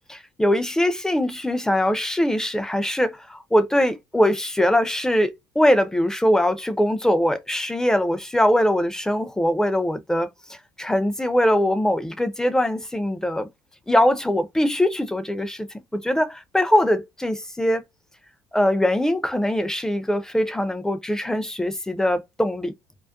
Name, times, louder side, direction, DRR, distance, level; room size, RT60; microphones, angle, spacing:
voice 1, 0.0-13.5 13.9-15.7 15.9-17.8 18.5-22.7, left 1 dB, 5° left, 0.4 m, -22 dB
2.3 x 2.2 x 2.4 m
hypercardioid pair, 60°, 11 cm